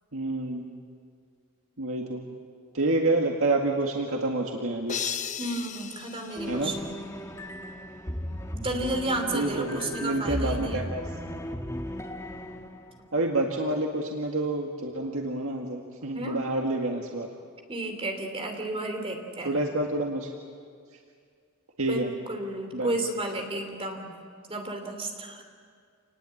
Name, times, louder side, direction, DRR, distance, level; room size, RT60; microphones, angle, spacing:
voice 1, 0.1-0.7 1.8-2.2 2.7-5.0 6.5-6.7 9.3-11.0 13.1-17.3 19.5-20.3 21.8-22.1 22.7-22.9, right 2 dB, 80° right, 0 dB, 2.0 m, -28 dB
sound 1, 4.9-7.2, left 8 dB, 35° left, 0.7 m, -36 dB
voice 2, 5.4-7.1 8.5-10.9 16.1-16.4 17.7-19.5 21.9-24.1 24.5-25.4, right 2 dB, 25° right, 4 dB, 3.2 m, -32 dB
sound 2, 6.4-13.1, equal, 15° left, 1.5 m, -36 dB
27.5 x 20.0 x 8.6 m, 2.1 s
head